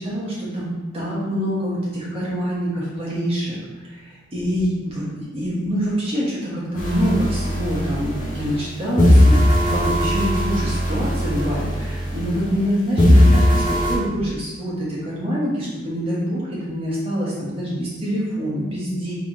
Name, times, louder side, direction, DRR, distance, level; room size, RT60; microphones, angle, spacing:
voice 1, 0.0-19.1, equal, 30° right, -7 dB, 1.3 m, -25 dB
sound 1, 6.7-8.6 9.0-12.7 13.0-13.9, left 1 dB, 40° left, 0.9 m, -18 dB
3.5 x 3.3 x 4.1 m, 1.2 s
head